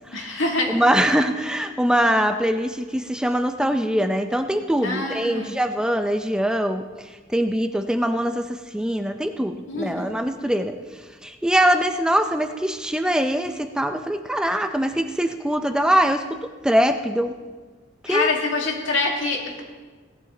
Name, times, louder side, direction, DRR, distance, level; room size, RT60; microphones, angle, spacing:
voice 1, 0.1-0.7 4.8-5.5 9.7-10.1 18.1-19.6, left 3 dB, 75° left, 0 dB, 2.4 m, -25 dB
voice 2, 0.7-6.8 7.3-10.7 11.2-17.4 18.1-18.3, equal, 5° right, 6 dB, 0.5 m, -22 dB
17.0 x 11.0 x 3.9 m, 1.4 s
head